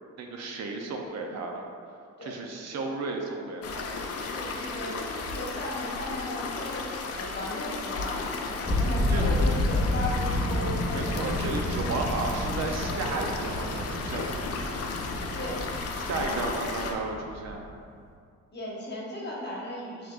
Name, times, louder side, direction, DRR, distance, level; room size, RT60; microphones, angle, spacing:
voice 1, 0.2-1.7 2.2-4.0 9.1-9.3 10.9-14.4 16.0-17.6, right 3 dB, 60° right, 2 dB, 0.6 m, -33 dB
sound 1, 3.6-16.9, left 4 dB, 50° left, 0.5 m, -35 dB
voice 2, 4.3-11.2 15.3-15.6 16.1-16.7 18.5-20.1, left 1 dB, 35° left, -4 dB, 1.0 m, -36 dB
sound 2, 8.6-17.7, left 1 dB, 10° left, 0.6 m, -30 dB
5.6 x 3.0 x 2.4 m, 2.2 s
cardioid pair, 90°, 30 cm